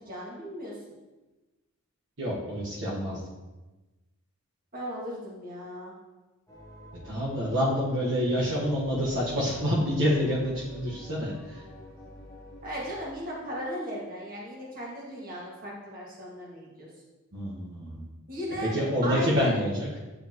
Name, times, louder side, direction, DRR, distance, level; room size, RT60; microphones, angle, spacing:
voice 1, 0.1-0.7 4.7-5.9 12.6-16.9 18.3-18.7 19.0-19.5, equal, 40° right, -5 dB, 1.9 m, -36 dB
voice 2, 2.2-3.2 7.0-11.6 17.3-18.1 18.7-19.9, equal, 55° right, -7 dB, 1.3 m, -27 dB
sound 1, 6.5-13.1, left 1 dB, 15° left, 1.0 m, -48 dB
9.5 x 5.0 x 3.0 m, 1.1 s
head